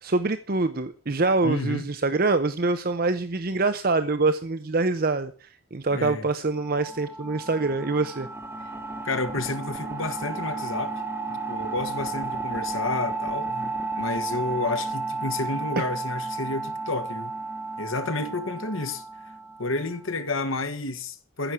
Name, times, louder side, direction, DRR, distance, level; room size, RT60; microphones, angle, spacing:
voice 1, 0.0-8.3 15.8-15.9, right 3 dB, 45° right, 0.7 m, -25 dB
voice 2, 1.4-1.8 5.9-6.3 9.0-11.0 11.3-17.3 17.8-19.0 19.6-21.5, left 3 dB, 75° left, 1.7 m, -30 dB
sound 1, 6.6-20.0, right 3 dB, 10° right, 1.9 m, -33 dB
15.0 x 6.4 x 9.7 m
head